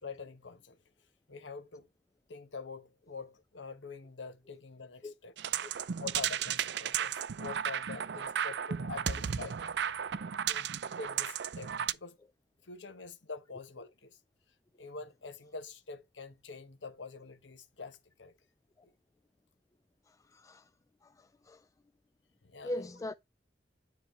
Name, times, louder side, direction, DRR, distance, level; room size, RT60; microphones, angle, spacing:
voice 1, 0.0-0.8 1.3-1.9 2.3-5.3 6.0-9.5 10.4-12.2 12.6-14.2 14.8-18.3 18.8-18.9 22.4-22.9, left 4 dB, 80° left, 1.1 m, -45 dB
sound 1, 5.4-11.9, right 9 dB, 70° right, 0.5 m, -34 dB
voice 2, 20.3-20.7 21.0-21.6 22.6-23.1, left 1 dB, 20° left, 0.3 m, -40 dB
9.7 x 4.1 x 3.2 m
head